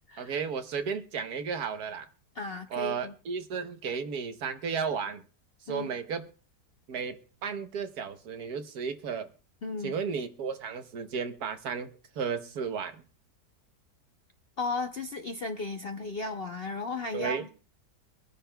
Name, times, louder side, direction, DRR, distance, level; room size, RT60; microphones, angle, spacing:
voice 1, 0.2-2.1 2.7-5.2 5.7-6.3 6.9-9.3 9.8-13.0 17.1-17.5, right 6 dB, 70° right, 1.4 m, -34 dB
voice 2, 2.3-3.1 5.7-5.9 9.6-10.0 14.6-17.5, left 3 dB, 55° left, 0.6 m, -35 dB
24.0 x 10.0 x 2.2 m
omnidirectional pair, 1.8 m